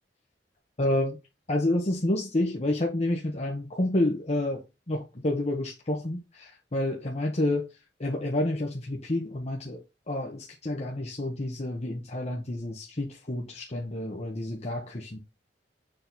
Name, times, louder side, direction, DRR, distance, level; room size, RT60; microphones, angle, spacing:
voice 1, 0.8-1.2 1.5-4.6 4.9-7.7 8.0-9.8 10.1-15.2, left 1 dB, 40° left, 1.2 m, -29 dB
6.8 x 3.6 x 4.0 m
head